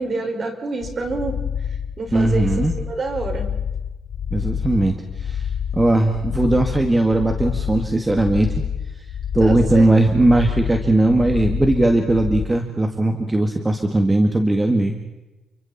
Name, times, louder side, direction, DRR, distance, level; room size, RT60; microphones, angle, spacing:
voice 1, 0.0-1.4 2.0-3.5 9.4-9.9, right 3 dB, 40° right, 4 dB, 5.1 m, -27 dB
sound 1, 0.8-12.5, left 8 dB, 70° left, 2.8 m, -28 dB
voice 2, 2.1-2.7 4.3-8.5 9.3-15.0, right 2 dB, 15° right, 5 dB, 2.0 m, -18 dB
30.0 x 24.0 x 4.3 m, 1.1 s
cardioid pair, 90°, 0 cm